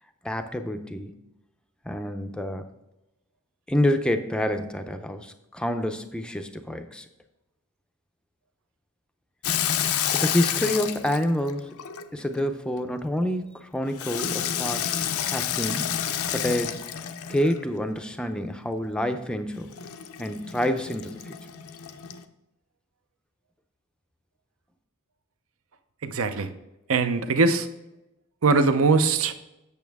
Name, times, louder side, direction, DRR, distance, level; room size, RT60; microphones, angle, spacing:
voice 1, 0.2-1.1 1.9-2.7 3.7-7.1 10.1-11.7 12.1-14.9 15.3-15.9 16.3-16.8 17.3-19.7 20.2-21.4, left 1 dB, 5° left, 7 dB, 0.5 m, -27 dB
Water tap faucet / Sink (filling or washing), 9.4-12.4 14.0-17.7 19.7-22.2, left 9 dB, 75° left, 0.5 m, -29 dB
voice 2, 26.0-26.5 26.9-27.7 28.4-29.3, right 4 dB, 65° right, 9 dB, 0.6 m, -21 dB
8.5 x 6.8 x 3.5 m, 0.92 s
head